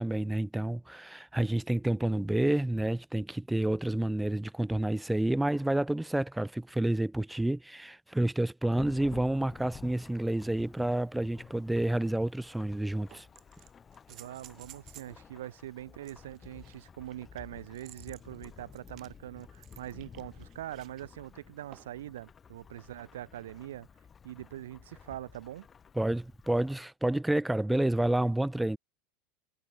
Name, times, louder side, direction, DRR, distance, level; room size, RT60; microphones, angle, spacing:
voice 1, 0.0-13.3 26.0-28.8, right 1 dB, 5° right, 0.6 m, -29 dB
Thunderstorm / Rain, 8.8-26.8, left 6 dB, 25° left, 2.5 m, -52 dB
sound 1, 12.0-12.1 13.1-15.2 16.0-21.0 21.7-22.1 23.7-23.8, right 14 dB, 45° right, 1.3 m, -55 dB
voice 2, 14.1-23.9 24.2-25.7, right 13 dB, 85° right, 0.6 m, -43 dB
hypercardioid pair, 110°, 0 cm